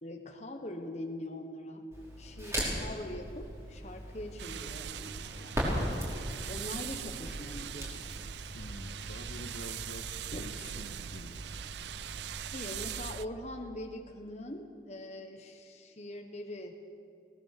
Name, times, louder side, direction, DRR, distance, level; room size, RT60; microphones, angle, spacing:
voice 1, 0.0-1.9 2.2-5.6 6.5-8.0 10.3-10.5 12.5-16.7, left 1 dB, 40° left, 4 dB, 1.3 m, -42 dB
Crackle, 1.9-12.9, equal, 15° right, 5.2 m, -39 dB
sound 1, 4.4-13.3, right 10 dB, 75° right, 0.4 m, -41 dB
voice 2, 8.5-11.4, left 1 dB, 70° left, 6 dB, 1.6 m, -47 dB
23.0 x 17.5 x 6.8 m, 2.5 s
head